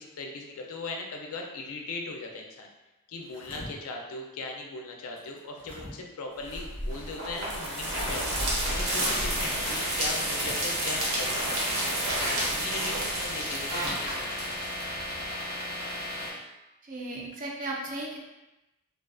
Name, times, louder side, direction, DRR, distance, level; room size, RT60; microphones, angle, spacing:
voice 1, 0.0-2.7 3.1-8.3 8.6-11.7 12.4-14.5, left 3 dB, 65° left, 1 dB, 0.4 m, -39 dB
sound 1, 3.1-3.7 5.2-5.9 7.8-8.2 10.2-10.6, equal, 25° left, 0.6 m, -44 dB
sound 2, 6.4-15.3, right 1 dB, 60° right, 0.7 m, -31 dB
sound 3, 8.6-16.3, left 1 dB, 80° right, 1.0 m, -34 dB
voice 2, 16.8-18.2, right 2 dB, 35° right, -1 dB, 0.4 m, -35 dB
2.4 x 2.3 x 2.3 m, 0.99 s
head